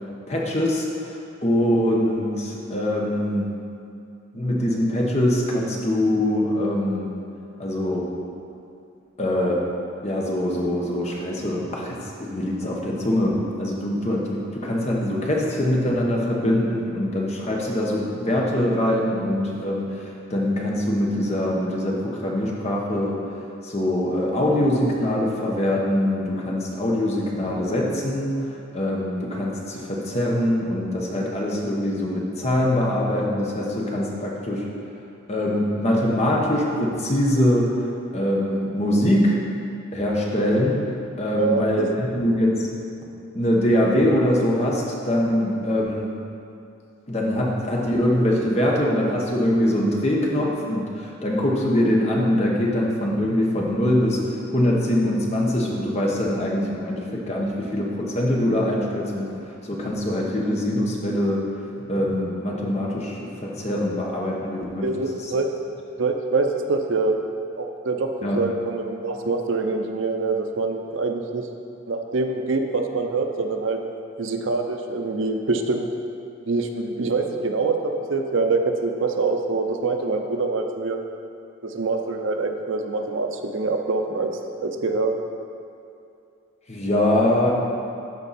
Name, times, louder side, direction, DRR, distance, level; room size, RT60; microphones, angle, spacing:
voice 1, 0.3-3.5 4.3-7.1 7.6-8.0 9.2-9.6 10.0-23.2 23.6-34.7 35.3-37.7 38.1-39.4 39.9-40.8 41.2-42.7 43.3-46.1 47.1-59.3 59.7-61.4 61.9-64.9 65.2-65.3 68.2-68.4 86.7-87.5, left 1 dB, 35° left, -2 dB, 1.1 m, -23 dB
voice 2, 41.3-41.9 64.8-65.5 66.0-67.2 67.6-71.4 71.9-73.8 74.2-75.9 76.5-81.0 81.6-84.3 84.6-85.1, right 3 dB, 75° right, 5 dB, 0.6 m, -25 dB
12.0 x 4.5 x 4.2 m, 2.6 s
head